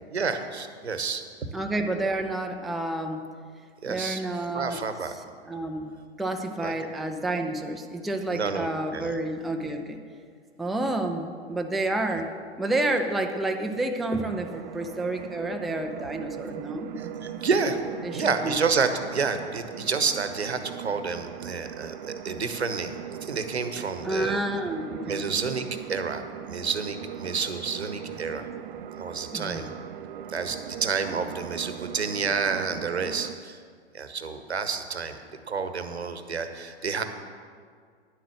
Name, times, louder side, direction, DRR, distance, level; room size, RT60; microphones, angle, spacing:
voice 1, 0.1-1.2 3.8-4.2 4.5-5.1 6.6-6.7 8.3-8.7 8.9-9.1 17.0-17.8 18.1-22.9 23.2-24.4 25.1-28.5 29.0-29.7 30.3-33.6 33.9-35.2 35.5-37.0, right 5 dB, 80° right, 9 dB, 1.0 m, -29 dB
voice 2, 1.5-3.3 3.9-4.8 5.1-10.0 10.6-16.9 18.0-18.6 24.0-25.3 29.3-29.7, right 2 dB, ahead, 3 dB, 0.4 m, -30 dB
sound 1, 14.1-33.3, right 10 dB, 50° right, 0.5 m, -40 dB
10.5 x 7.7 x 6.4 m, 2.1 s
figure-of-eight pair, 100°, 32 cm